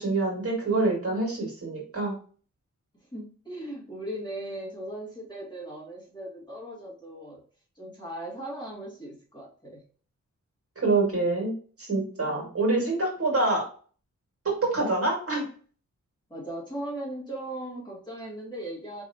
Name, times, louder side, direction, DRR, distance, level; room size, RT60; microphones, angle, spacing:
voice 1, 0.0-2.1 10.8-13.6 14.4-15.5, right 2 dB, 50° right, -1 dB, 2.0 m, -26 dB
voice 2, 3.1-7.4 7.7-9.8 12.2-12.6 16.3-19.0, right 1 dB, 15° left, -5 dB, 1.7 m, -38 dB
4.4 x 3.4 x 2.7 m, 0.42 s
wide cardioid pair, 130°, 30 cm